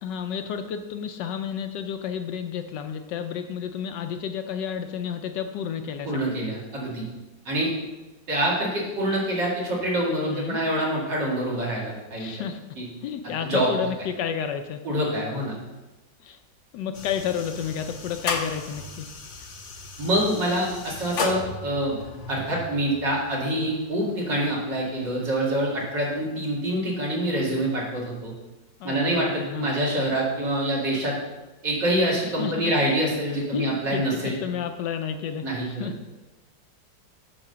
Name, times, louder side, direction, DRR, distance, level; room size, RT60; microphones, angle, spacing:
voice 1, 0.0-6.4 10.3-10.6 12.2-12.6 13.0-14.8 16.2-16.4 16.7-19.1 28.8-29.7 32.2-32.7 33.5-36.1, left 8 dB, 75° left, 7 dB, 1.2 m, -31 dB
voice 2, 6.0-7.0 7.5-7.7 8.3-12.4 12.8-12.9 13.4-13.7 14.8-15.6 20.0-22.0 22.3-28.3 28.8-31.2 31.6-34.4 35.4-35.9, right 1 dB, 65° right, -4 dB, 2.8 m, -26 dB
sound 1, 16.9-26.2, left 4 dB, 50° left, 1.0 m, -36 dB
8.7 x 4.0 x 6.7 m, 1.1 s
omnidirectional pair, 2.1 m